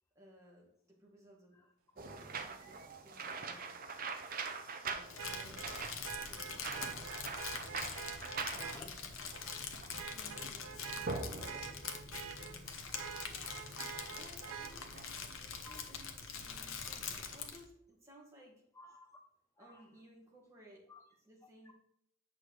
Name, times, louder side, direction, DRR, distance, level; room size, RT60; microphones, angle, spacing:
voice 1, 0.2-1.6 1.9-3.8 4.8-5.6 6.2-7.3 9.9-13.2 14.1-15.1 15.4-18.6 19.6-20.9 21.2-21.7, right 1 dB, 15° right, -3 dB, 1.7 m, -60 dB
sound 1, 2.0-15.6, right 4 dB, 40° right, 0.6 m, -44 dB
Vehicle horn car horn honking, 2.3-2.5 5.2-8.8 9.3-9.6 9.9-12.6 12.9-14.7 16.6-16.7, right 7 dB, 80° right, 0.6 m, -46 dB
voice 2, 3.4-3.9 5.2-5.6 5.9-6.1 6.5-6.9 7.5-8.2 8.5-9.2 12.8-12.9 15.6-15.8 18.7-19.1 19.6-19.9 20.9-21.0 21.6-21.7, left 2 dB, 15° left, 3 dB, 0.4 m, -57 dB
Crumpling crinkling, 5.0-17.6, left 6 dB, 70° left, 0.9 m, -44 dB
8.3 x 6.0 x 3.2 m, 0.75 s
head